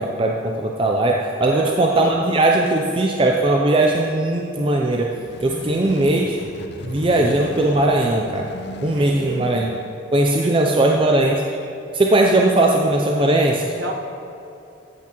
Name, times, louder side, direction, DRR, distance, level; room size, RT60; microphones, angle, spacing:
voice 1, 0.0-5.1 5.4-6.4 6.8-8.5 8.8-9.7 10.1-11.6 11.9-13.7, right 2 dB, 25° right, 0 dB, 0.4 m, -19 dB
voice 2, 1.4-1.9 5.5-5.9 8.9-9.9 10.4-11.0 13.7-13.9, right 2 dB, 55° right, 2 dB, 1.0 m, -33 dB
sound 1, 4.8-10.1, left 1 dB, 55° left, 0.6 m, -38 dB
14.0 x 8.3 x 3.0 m, 2.7 s
head